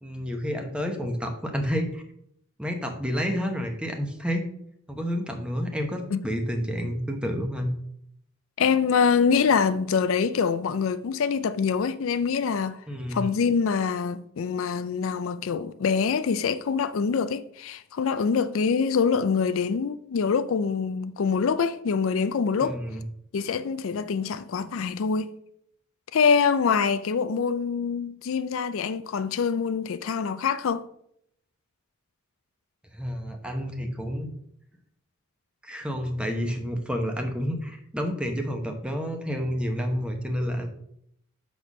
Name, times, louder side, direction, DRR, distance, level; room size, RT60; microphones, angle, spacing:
voice 1, 0.0-2.0 2.6-4.5 4.9-7.7 12.9-13.2 22.6-23.0 32.9-34.3 35.6-40.7, equal, 5° right, 0.8 m, -29 dB
voice 2, 8.6-12.8 13.1-22.8 23.3-25.3 26.1-30.8, left 6 dB, 65° left, 0.4 m, -25 dB
6.9 x 4.3 x 6.0 m
head